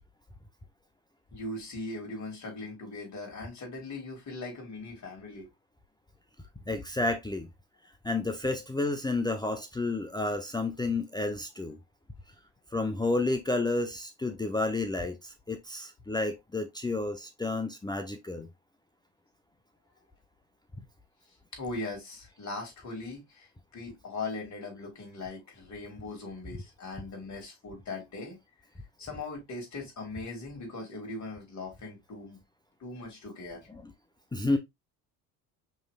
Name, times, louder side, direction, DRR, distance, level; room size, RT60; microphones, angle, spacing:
voice 1, 1.3-5.5 21.5-28.4 29.0-32.4 32.8-33.7, left 3 dB, 40° left, 3.0 m, -40 dB
voice 2, 6.7-7.5 8.0-11.8 12.7-18.5 33.7-33.9 34.3-34.6, left 2 dB, 10° left, 0.6 m, -31 dB
5.4 x 3.1 x 2.3 m
hypercardioid pair, 75°, 44 cm